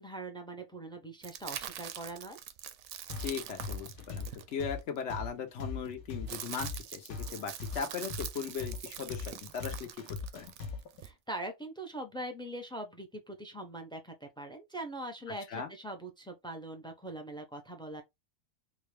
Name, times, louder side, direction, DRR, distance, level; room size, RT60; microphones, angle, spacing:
voice 1, 0.0-2.4 11.0-18.0, right 1 dB, 5° left, 0.3 m, -42 dB
sound 1, 1.2-5.0 5.9-11.1, right 10 dB, 80° right, 1.0 m, -44 dB
sound 2, 3.1-11.0, left 5 dB, 85° left, 1.2 m, -40 dB
voice 2, 3.2-4.3 4.5-9.9 10.3-10.5 15.5-15.7, left 6 dB, 65° left, 0.9 m, -38 dB
3.8 x 2.2 x 3.2 m
omnidirectional pair, 1.4 m